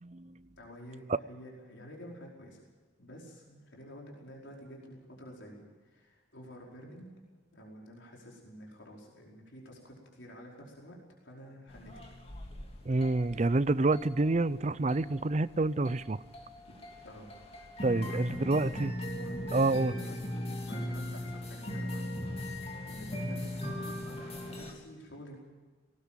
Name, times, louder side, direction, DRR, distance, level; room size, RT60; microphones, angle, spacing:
voice 1, 0.0-0.4 12.9-16.2 17.8-18.9 19.5-19.9, right 2 dB, 35° right, 0.5 m, -28 dB
voice 2, 0.6-2.6 3.0-7.1 7.5-11.0 11.2-11.9 16.6-16.8 17.0-17.3 18.0-18.5 19.1-25.3, equal, 70° left, 5.0 m, -50 dB
sound 1, 11.7-24.7, left 1 dB, 30° left, 3.0 m, -39 dB
19.5 x 19.0 x 7.5 m
head